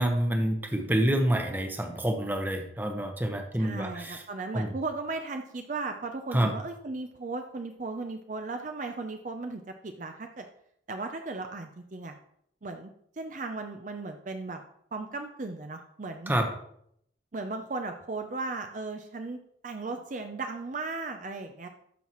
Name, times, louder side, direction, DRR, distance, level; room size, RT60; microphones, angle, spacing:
voice 1, 0.0-4.2 4.5-4.7 6.3-6.5 16.3-16.5, right 1 dB, 10° right, 4 dB, 0.9 m, -27 dB
voice 2, 3.6-10.4 10.9-12.1 12.6-12.9 13.2-14.6 14.9-16.3 17.3-19.4 19.6-21.7, right 3 dB, 40° right, 5 dB, 0.5 m, -36 dB
13.0 x 5.6 x 3.0 m, 0.71 s
head